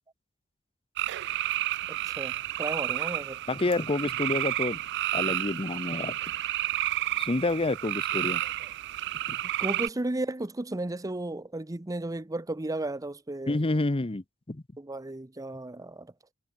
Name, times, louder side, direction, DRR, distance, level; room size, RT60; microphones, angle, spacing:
sound 1, 1.0-9.9, right 14 dB, 55° right, 0.3 m, -31 dB
voice 1, 1.9-3.4 8.6-8.7 9.6-13.6 14.8-16.1, right 2 dB, 15° right, 0.7 m, -34 dB
voice 2, 3.5-4.8 5.1-6.2 7.2-8.4 9.3-9.4 13.5-14.6, left 2 dB, 25° left, 0.8 m, -28 dB
head